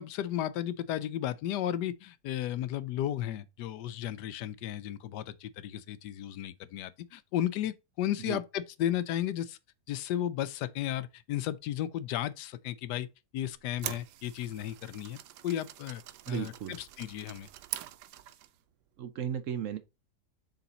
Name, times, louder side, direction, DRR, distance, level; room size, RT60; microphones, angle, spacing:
voice 1, 0.0-9.6 9.9-13.1 13.3-16.0 16.3-17.5, left 11 dB, 90° left, 1.2 m, -34 dB
sound 1, 13.5-18.6, right 13 dB, 85° right, 1.2 m, -44 dB
voice 2, 16.3-16.7 19.0-19.8, right 9 dB, 65° right, 0.8 m, -35 dB
7.0 x 3.9 x 3.9 m
omnidirectional pair, 1.7 m